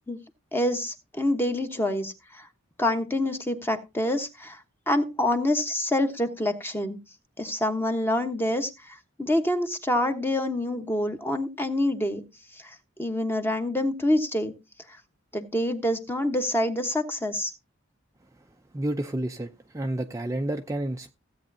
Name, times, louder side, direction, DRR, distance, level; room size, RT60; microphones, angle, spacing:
voice 1, 0.5-2.5 2.8-4.6 4.9-7.0 7.4-12.2 12.6-14.5 15.3-17.5, left 1 dB, 10° left, 1.2 m, -26 dB
voice 2, 18.7-21.1, right 1 dB, 15° right, 0.5 m, -30 dB
16.0 x 8.5 x 2.7 m
head